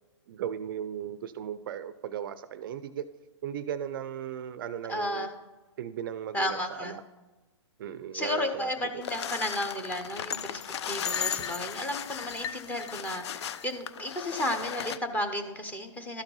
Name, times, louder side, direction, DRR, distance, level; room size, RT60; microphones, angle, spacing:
voice 1, 0.3-3.1 3.4-5.3 5.8-7.0 7.8-8.7 8.9-9.0, right 9 dB, 45° right, 14 dB, 0.4 m, -36 dB
voice 2, 4.9-5.3 6.3-7.0 8.1-10.6 10.9-16.2, left 1 dB, 10° left, 6 dB, 0.8 m, -33 dB
sound 1, 9.0-15.0, left 8 dB, 60° left, 0.4 m, -36 dB
12.5 x 4.4 x 4.0 m, 1.2 s
hypercardioid pair, 135°, 16 cm